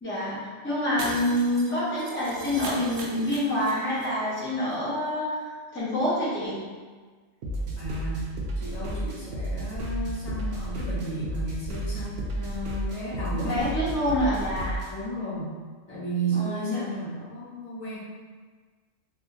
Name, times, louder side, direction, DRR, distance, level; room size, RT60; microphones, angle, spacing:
voice 1, 0.0-5.4 5.7-6.6 13.4-14.8 16.3-16.8, left 1 dB, 10° left, -9 dB, 0.7 m, -27 dB
Shatter, 1.0-4.1 4.3-4.4 4.7-4.8, right 2 dB, 90° right, 1.0 m, -39 dB
sound 1, 7.4-14.9, right 1 dB, 60° right, 0.7 m, -32 dB
voice 2, 7.8-13.7 14.9-15.6 15.9-18.0, right 2 dB, 65° left, -8 dB, 1.3 m, -33 dB
3.4 x 2.5 x 2.7 m, 1.5 s
omnidirectional pair, 1.3 m